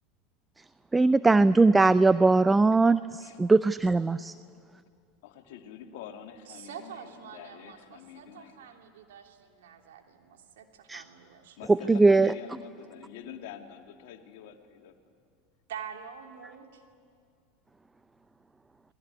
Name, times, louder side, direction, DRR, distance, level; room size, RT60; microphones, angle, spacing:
voice 1, 0.9-4.3 10.9-11.0 11.7-12.3, right 3 dB, 15° right, 15 dB, 0.6 m, -21 dB
voice 2, 5.2-8.6 11.6-15.0, left 8 dB, 65° left, 4 dB, 2.4 m, -46 dB
voice 3, 6.5-11.7 15.7-16.9, right 8 dB, 70° right, 3 dB, 3.1 m, -46 dB
29.5 x 21.0 x 9.6 m, 2.3 s
figure-of-eight pair, 80°, 0 cm